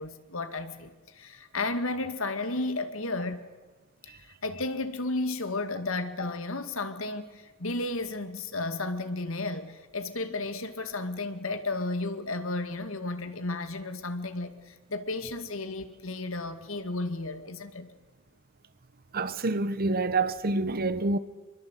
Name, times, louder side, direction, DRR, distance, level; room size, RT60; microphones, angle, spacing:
voice 1, 0.0-3.4 4.4-17.9, left 2 dB, 70° left, 2.1 m, -33 dB
voice 2, 19.1-21.2, right 3 dB, 45° right, 1.1 m, -27 dB
25.5 x 23.0 x 8.3 m
head